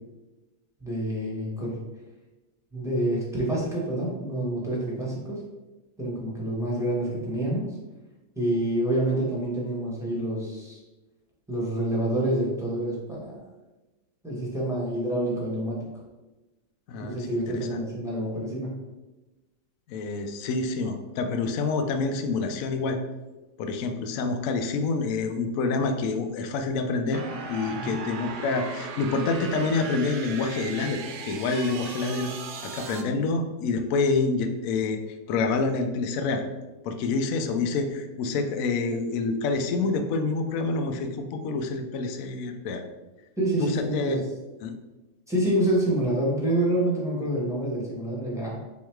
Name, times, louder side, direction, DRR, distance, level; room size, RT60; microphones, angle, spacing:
voice 1, 0.8-1.8 2.7-5.4 6.0-7.7 8.3-10.8 11.5-13.4 14.2-15.8 17.0-18.8 27.7-27.9 43.4-44.3 45.3-48.6, right 1 dB, ahead, -6 dB, 0.9 m, -27 dB
voice 2, 16.9-17.8 19.9-23.0 23.6-32.3 32.6-35.0 35.3-36.4 36.8-42.8 43.6-44.2 44.6-44.7, left 3 dB, 80° left, 6 dB, 0.7 m, -27 dB
sound 1, 27.1-33.0, right 5 dB, 70° right, 1.0 m, -37 dB
3.7 x 3.1 x 4.4 m, 1.1 s
omnidirectional pair, 2.0 m